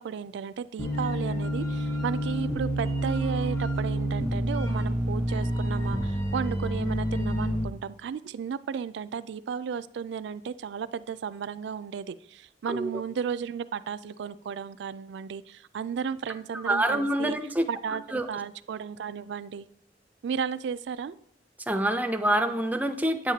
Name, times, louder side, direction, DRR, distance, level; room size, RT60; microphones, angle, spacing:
voice 1, 0.0-17.3 17.7-19.7 20.2-21.2, right 7 dB, 70° right, 15 dB, 0.3 m, -34 dB
sound 1, 0.8-7.6, equal, 20° left, 1.2 m, -28 dB
voice 2, 12.7-13.0 16.5-17.7 18.1-18.3 21.7-23.3, right 1 dB, 10° right, 7 dB, 0.5 m, -26 dB
9.0 x 7.3 x 2.8 m, 0.71 s
head